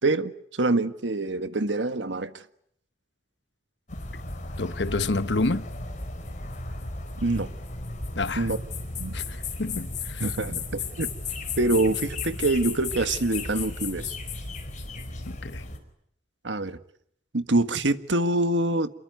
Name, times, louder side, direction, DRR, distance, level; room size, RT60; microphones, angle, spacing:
voice 1, 0.0-2.4 7.2-7.5 8.4-8.6 9.0-9.1 10.2-11.1 11.6-14.1 16.4-16.8 17.3-18.9, right 2 dB, 80° right, 1.6 m, -25 dB
sound 1, 3.9-15.8, left 3 dB, 45° left, 4.9 m, -34 dB
voice 2, 4.6-5.6 8.1-8.5 9.1-10.3 15.2-15.6, left 3 dB, 70° left, 1.1 m, -29 dB
28.0 x 22.5 x 9.3 m
head